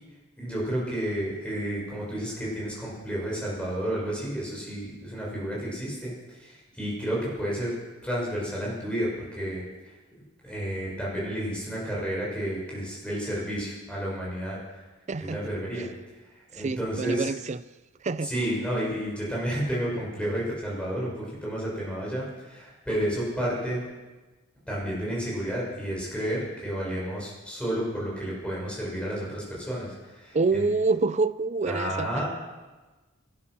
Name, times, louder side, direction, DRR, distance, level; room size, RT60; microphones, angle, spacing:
voice 1, 0.4-7.7 8.0-9.6 10.4-14.8 15.2-15.9 16.5-17.3 18.2-23.8 24.7-30.7 31.7-32.3, equal, 5° left, -5 dB, 5.7 m, -31 dB
voice 2, 15.1-15.4 16.6-17.6 18.0-18.3 30.3-32.2, right 3 dB, 35° right, 15 dB, 0.4 m, -26 dB
18.5 x 11.5 x 6.2 m, 1.2 s
head